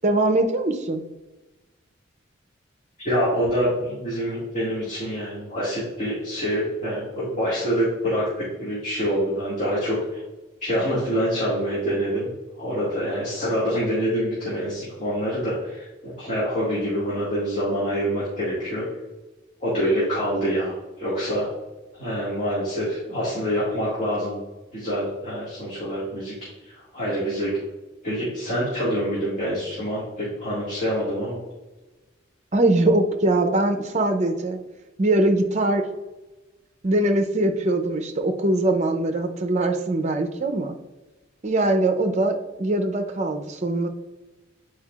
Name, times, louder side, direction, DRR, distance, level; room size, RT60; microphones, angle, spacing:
voice 1, 0.0-1.0 32.5-34.6 35.0-35.8 36.8-40.8 41.4-43.9, right 2 dB, 35° right, 6 dB, 0.6 m, -22 dB
voice 2, 3.0-8.2 8.6-10.2 10.6-12.3 12.6-18.8 19.6-21.5 21.9-24.4 24.7-26.3 26.7-27.5 28.0-31.4, equal, 40° left, -8 dB, 1.8 m, -26 dB
8.5 x 4.6 x 2.4 m, 1.1 s
head